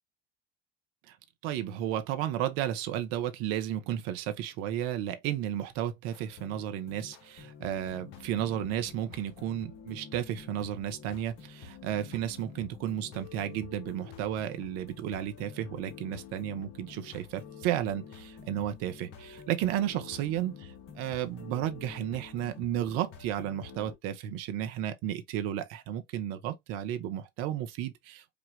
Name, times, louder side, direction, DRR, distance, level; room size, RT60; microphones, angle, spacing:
voice 1, 1.4-20.7 21.0-28.3, right 11 dB, 50° right, 0.7 m, -33 dB
sound 1, 6.1-23.9, left 6 dB, 50° left, 1.3 m, -48 dB
5.0 x 2.4 x 3.1 m
figure-of-eight pair, 65°, 31 cm